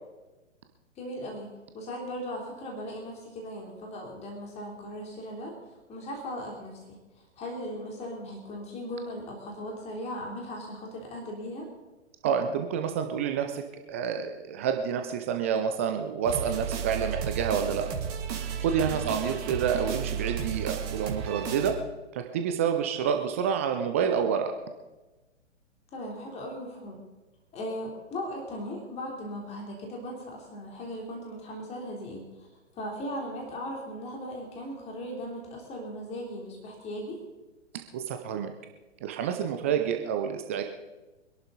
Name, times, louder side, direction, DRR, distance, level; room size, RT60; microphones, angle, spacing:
voice 1, 1.0-1.5 1.7-5.5 5.9-11.7 18.8-19.1 25.9-27.0 27.5-32.5 32.7-37.2, equal, 15° left, 0 dB, 3.3 m, -38 dB
voice 2, 12.2-13.6 13.9-17.9 18.6-21.8 22.1-24.5 37.9-38.5 39.0-40.6, right 7 dB, 10° right, 5 dB, 0.4 m, -28 dB
sound 1, 16.2-21.7, right 7 dB, 30° right, 2.5 m, -33 dB
24.5 x 11.0 x 4.0 m, 1.1 s
figure-of-eight pair, 120°, 37 cm